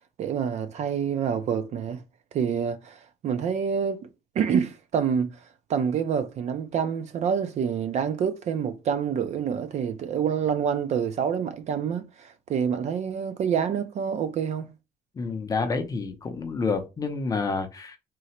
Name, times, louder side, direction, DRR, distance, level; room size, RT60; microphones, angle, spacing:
voice 1, 0.2-2.0 2.3-4.1 4.4-5.4 5.7-14.7, right 7 dB, 45° right, 0.4 m, -27 dB
voice 2, 15.1-18.0, left 4 dB, 20° left, 0.5 m, -29 dB
3.8 x 2.0 x 4.2 m
cardioid pair, 180°, 16 cm